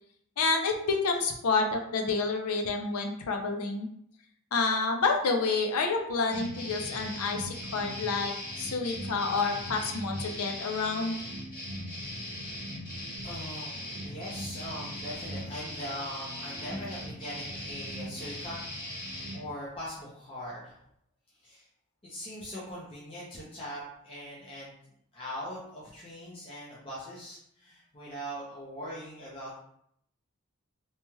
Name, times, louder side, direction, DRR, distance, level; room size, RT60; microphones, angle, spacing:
voice 1, 0.4-3.9 4.5-11.2, left 4 dB, 90° left, 3 dB, 0.5 m, -29 dB
sound 1, 6.3-19.4, equal, 40° left, 1.5 m, -39 dB
voice 2, 13.2-20.8 21.4-21.7 22.0-24.7 25.1-29.6, equal, 25° left, -7 dB, 0.5 m, -41 dB
3.0 x 2.8 x 2.2 m, 0.71 s
head